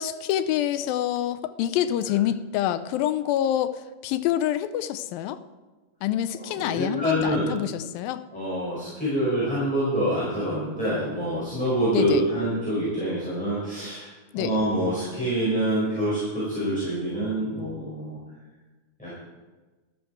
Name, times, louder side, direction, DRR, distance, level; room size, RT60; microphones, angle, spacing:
voice 1, 0.0-3.7 4.0-5.4 6.0-8.2 11.9-12.2 14.3-14.6, left 11 dB, 90° left, 12 dB, 2.4 m, -26 dB
voice 2, 6.3-7.5 8.3-14.1 14.3-18.2 19.0-19.3, equal, ahead, -9 dB, 4.8 m, -26 dB
14.0 x 13.0 x 4.6 m, 1.2 s
omnidirectional pair, 4.0 m